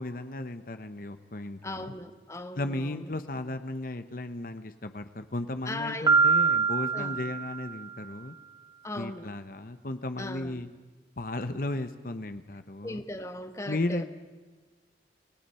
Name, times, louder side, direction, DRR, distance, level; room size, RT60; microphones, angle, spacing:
voice 1, 0.0-1.9 2.6-8.3 8.9-10.7 11.2-13.0 13.7-14.0, left 2 dB, 55° left, 9 dB, 1.0 m, -35 dB
voice 2, 1.6-3.1 5.6-6.1 6.9-7.2 8.8-9.4 10.2-10.6 12.8-14.0, left 1 dB, 15° left, 8 dB, 1.3 m, -38 dB
Piano, 6.1-8.0, right 5 dB, 20° right, 2.1 m, -24 dB
29.0 x 19.0 x 5.7 m, 1.3 s
head